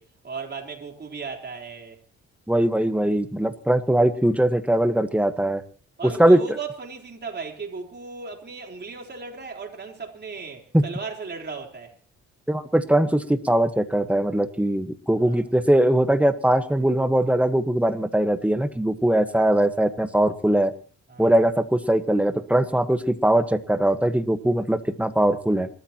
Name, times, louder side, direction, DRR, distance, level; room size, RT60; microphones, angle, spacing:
voice 1, 0.0-2.0 6.0-12.0 15.1-15.4 21.1-21.5, right 5 dB, 35° right, 4.0 m, -36 dB
voice 2, 2.5-5.6 6.2-6.4 10.7-10.8 12.5-20.7 21.2-25.7, right 1 dB, 5° right, 1.4 m, -21 dB
28.0 x 13.5 x 3.0 m
cardioid pair, 90°, 30 cm